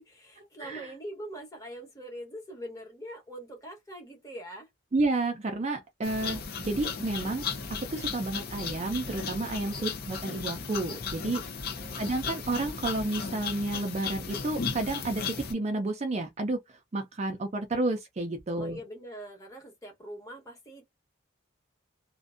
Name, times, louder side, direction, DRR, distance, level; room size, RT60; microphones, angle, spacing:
voice 1, 0.0-4.7 9.5-9.9 11.7-12.1 18.5-20.9, right 1 dB, 15° left, 1.0 m, -43 dB
voice 2, 4.9-11.4 12.0-18.8, right 2 dB, 30° right, 0.4 m, -31 dB
sound 1, 6.0-15.5, left 5 dB, 50° left, 0.5 m, -36 dB
2.5 x 2.1 x 2.4 m
head